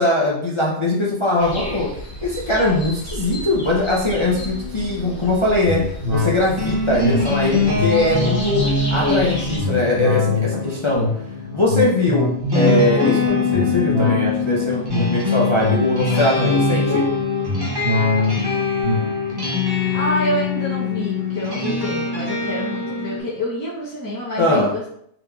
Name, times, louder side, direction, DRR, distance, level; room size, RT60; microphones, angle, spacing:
voice 1, 0.0-1.9 2.2-5.8 6.1-8.6 8.9-11.1 11.5-12.3 12.5-17.0 24.4-24.7, left 2 dB, 35° left, -4 dB, 0.5 m, -21 dB
sound 1, 1.4-9.6, equal, 75° left, 1.9 m, -33 dB
sound 2, 4.0-23.2, left 4 dB, 20° right, 0.7 m, -24 dB
sound 3, 5.6-21.4 21.8-21.9, left 2 dB, 55° right, 1.2 m, -24 dB
voice 2, 19.9-24.9, equal, 15° left, -9 dB, 1.1 m, -27 dB
3.9 x 3.0 x 3.4 m, 0.68 s
omnidirectional pair, 1.3 m